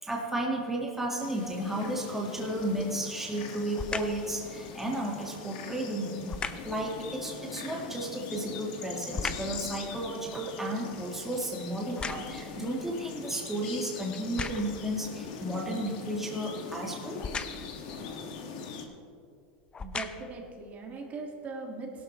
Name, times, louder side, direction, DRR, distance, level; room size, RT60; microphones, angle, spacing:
voice 1, 0.0-6.3 6.6-17.2, right 1 dB, 5° right, -2 dB, 1.8 m, -33 dB
sound 1, 1.2-18.8, left 5 dB, 65° left, 1.7 m, -42 dB
sound 2, 2.6-3.0 3.7-4.3 6.3-6.8 8.2-9.6 10.1-12.6 13.2-13.3 14.1-14.9 17.2-17.8 18.8-18.9 19.6-20.4 21.1-21.2, left 5 dB, 20° left, 0.7 m, -38 dB
voice 2, 19.8-22.0, right 3 dB, 35° right, 1 dB, 1.9 m, -40 dB
17.0 x 12.0 x 3.1 m, 2.3 s
supercardioid pair, 120°, 5 cm